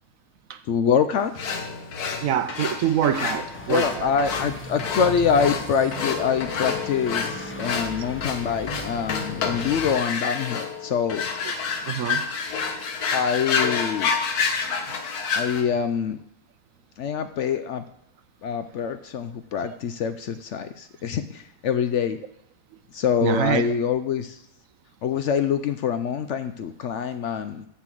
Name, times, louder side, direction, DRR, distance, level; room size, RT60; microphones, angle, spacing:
voice 1, 0.7-1.3 3.7-11.2 13.1-14.1 15.3-16.2 17.0-17.8 18.4-22.2 22.9-24.4 25.0-27.7, left 7 dB, 65° left, 0.8 m, -25 dB
sound 1, 1.4-15.6, left 5 dB, 85° left, 1.6 m, -29 dB
voice 2, 2.2-4.1 11.9-12.2 23.2-23.7, right 9 dB, 70° right, 1.0 m, -25 dB
sound 2, 3.5-9.9, left 1 dB, 10° left, 0.6 m, -38 dB
7.0 x 6.6 x 7.5 m
omnidirectional pair, 1.6 m